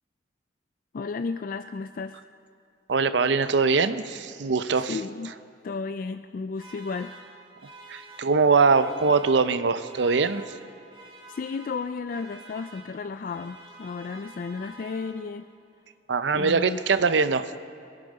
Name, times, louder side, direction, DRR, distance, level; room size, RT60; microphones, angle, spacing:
voice 1, 0.9-2.2 4.9-5.3 5.6-7.1 11.3-15.5 16.3-16.8, left 4 dB, 50° left, 10 dB, 0.3 m, -33 dB
voice 2, 2.9-5.0 7.9-10.5 16.1-17.6, right 4 dB, 80° right, 12 dB, 0.6 m, -22 dB
sound 1, 6.5-15.6, right 2 dB, 30° right, 2.3 m, -48 dB
22.5 x 9.9 x 5.3 m, 2.5 s
head